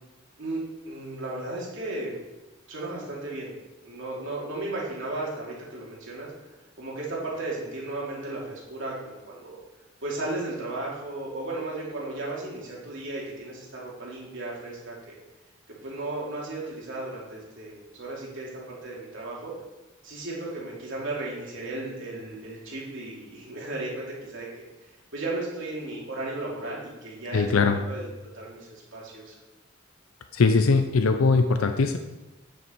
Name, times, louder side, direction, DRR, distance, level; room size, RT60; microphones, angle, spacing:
voice 1, 0.9-2.2 2.7-3.5 3.8-6.3 6.8-9.6 10.0-15.1 15.8-19.5 20.0-24.5 25.1-28.1 28.3-29.4, right 2 dB, 65° right, -4 dB, 2.9 m, -35 dB
voice 2, 27.3-27.8 30.3-32.0, left 4 dB, 80° left, 7 dB, 0.6 m, -21 dB
9.3 x 6.6 x 4.5 m, 1.0 s
head